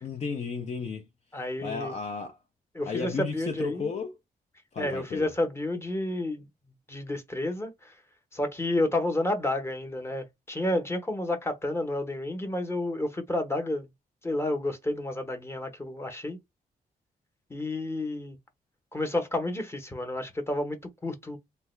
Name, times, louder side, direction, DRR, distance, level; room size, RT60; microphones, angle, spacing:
voice 1, 0.0-1.1 1.6-2.4 2.9-4.1 4.7-5.3, left 5 dB, 45° left, 0.5 m, -33 dB
voice 2, 1.3-1.9 2.7-3.9 4.8-6.5 6.9-7.9 8.3-13.9 14.2-16.4 17.5-18.4 18.9-21.4, left 1 dB, 15° left, 0.9 m, -30 dB
3.3 x 2.2 x 3.1 m
wide cardioid pair, 120°, 16 cm